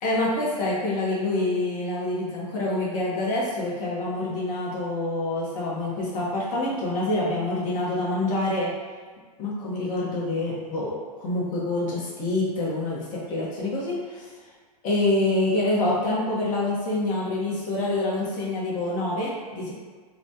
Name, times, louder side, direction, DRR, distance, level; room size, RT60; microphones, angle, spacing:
voice 1, 0.0-8.7 9.4-14.3 14.8-19.7, left 2 dB, 40° left, -6 dB, 1.0 m, -26 dB
3.1 x 2.2 x 2.7 m, 1.5 s
hypercardioid pair, 115°, 20 cm